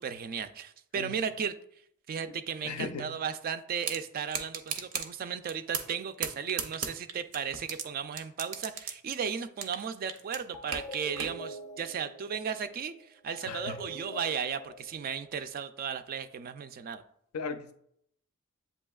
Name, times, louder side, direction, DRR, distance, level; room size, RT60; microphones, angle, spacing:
voice 1, 0.0-1.5 2.1-17.0, right 7 dB, 40° right, 11 dB, 0.3 m, -35 dB
voice 2, 2.6-3.1 13.4-13.8 17.3-17.7, left 4 dB, 75° left, 9 dB, 0.5 m, -37 dB
sound 1, 3.8-4.0 4.3-5.1 5.5-6.0 6.2-7.8 8.2-9.8 10.1-11.3, right 6 dB, 90° right, 0.6 m, -34 dB
sound 2, 10.2-10.3 10.5-15.7, equal, 20° left, 0.5 m, -45 dB
8.0 x 2.8 x 2.3 m, 0.69 s
head